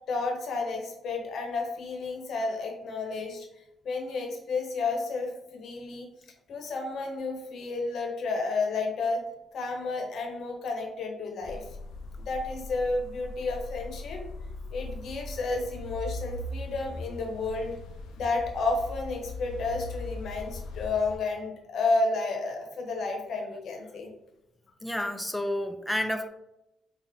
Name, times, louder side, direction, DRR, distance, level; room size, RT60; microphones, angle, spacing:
voice 1, 0.1-3.5 3.8-6.1 6.5-9.2 9.5-11.6 12.3-14.2 14.7-17.7 18.2-24.1, left 3 dB, 65° left, 2 dB, 0.8 m, -31 dB
sound 1, 11.4-21.2, left 2 dB, 85° left, 0.4 m, -40 dB
voice 2, 24.8-26.3, left 1 dB, 5° left, 6 dB, 0.4 m, -30 dB
4.5 x 2.4 x 2.7 m, 0.89 s
cardioid pair, 90°, 0 cm